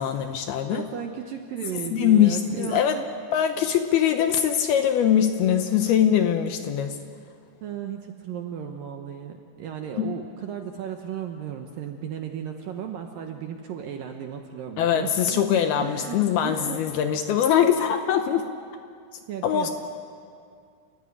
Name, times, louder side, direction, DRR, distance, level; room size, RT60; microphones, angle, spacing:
voice 1, 0.0-0.8 1.9-3.0 3.3-7.0 10.0-10.1 14.8-18.5 19.4-19.7, left 9 dB, 75° left, 7 dB, 2.5 m, -22 dB
voice 2, 0.7-3.0 7.6-15.4 15.8-16.8 19.3-19.7, right 8 dB, 75° right, 4 dB, 2.2 m, -35 dB
29.0 x 14.5 x 10.0 m, 2.3 s
omnidirectional pair, 5.2 m